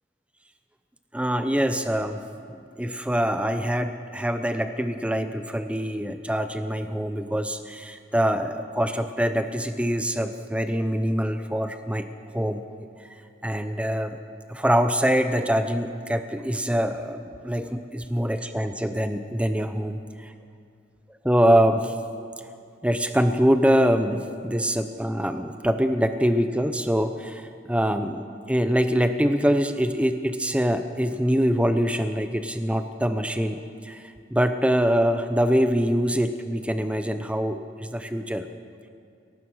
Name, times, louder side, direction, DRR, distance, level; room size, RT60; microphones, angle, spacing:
voice 1, 1.1-2.2 2.5-12.1 12.3-12.6 13.4-14.2 14.5-20.3 21.2-21.9 22.8-38.5, equal, 5° right, 8 dB, 0.7 m, -24 dB
23.0 x 18.0 x 6.3 m, 2.3 s
head